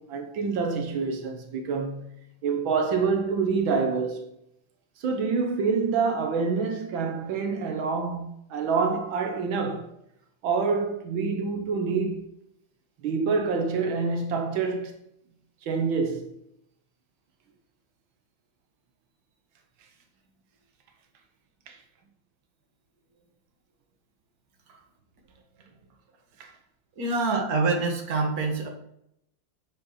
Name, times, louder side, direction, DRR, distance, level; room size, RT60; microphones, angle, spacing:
voice 1, 0.0-2.1 2.4-4.3 5.0-9.9 10.4-12.2 13.0-14.9 15.6-16.3 21.7-21.8 26.4-26.5, right 5 dB, 85° right, 1.8 m, -27 dB
voice 2, 27.0-28.7, right 3 dB, 50° right, 2.1 m, -25 dB
8.1 x 5.7 x 5.6 m
omnidirectional pair, 2.1 m